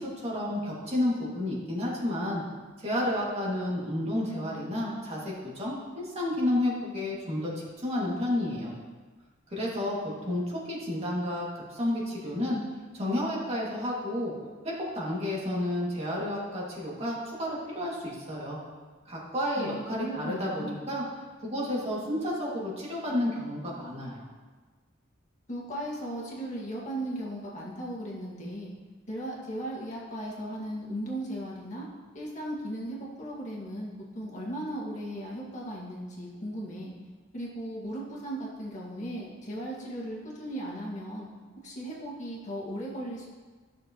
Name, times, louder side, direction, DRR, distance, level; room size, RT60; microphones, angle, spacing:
voice 1, 0.0-2.4 2.8-8.7 9.5-12.6 12.9-18.6 19.1-21.0 21.4-24.2, left 1 dB, 35° right, -6 dB, 2.2 m, -31 dB
voice 2, 19.6-20.8 25.5-28.7 29.1-31.9 32.1-36.9 37.3-41.3 41.6-43.3, right 1 dB, 40° left, -5 dB, 1.9 m, -37 dB
14.0 x 6.5 x 3.0 m, 1.4 s
head